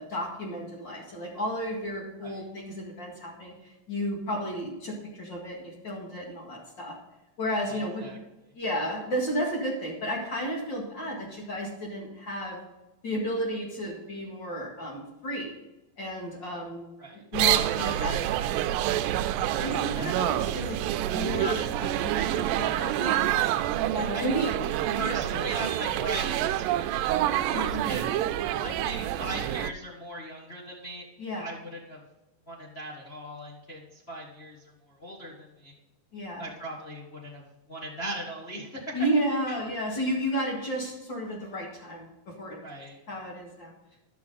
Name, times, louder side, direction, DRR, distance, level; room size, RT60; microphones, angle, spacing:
voice 1, 0.0-7.0 7.4-8.1 8.5-12.6 13.0-15.5 16.0-16.9 17.3-18.8 19.6-23.2 23.9-24.5 24.9-25.1 27.5-27.9 31.2-31.6 36.1-36.5 38.9-42.1 42.4-42.6 43.1-43.7, equal, 40° left, -2 dB, 2.2 m, -32 dB
voice 2, 7.7-8.2 17.0-17.2 24.1-24.5 25.0-28.2 28.6-31.0 31.4-32.0 32.5-35.7 36.4-37.4 37.7-38.9 39.5-39.6 42.6-43.0, right 1 dB, 70° left, -5 dB, 0.6 m, -39 dB
sound 1, 17.3-29.7, right 12 dB, 85° right, 2.2 m, -27 dB
11.5 x 6.5 x 4.0 m, 0.97 s
omnidirectional pair, 3.9 m